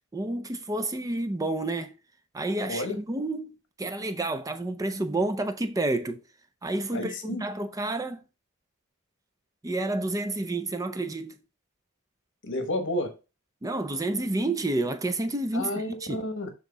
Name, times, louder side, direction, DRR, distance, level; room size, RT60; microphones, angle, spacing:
voice 1, 0.1-1.9 2.3-6.2 6.6-8.2 9.6-11.4 13.6-16.2, right 2 dB, 15° right, 0.5 m, -30 dB
voice 2, 2.7-3.0 6.9-7.4 12.4-13.1 15.5-16.5, left 1 dB, 60° left, 1.1 m, -31 dB
7.3 x 3.7 x 3.9 m
head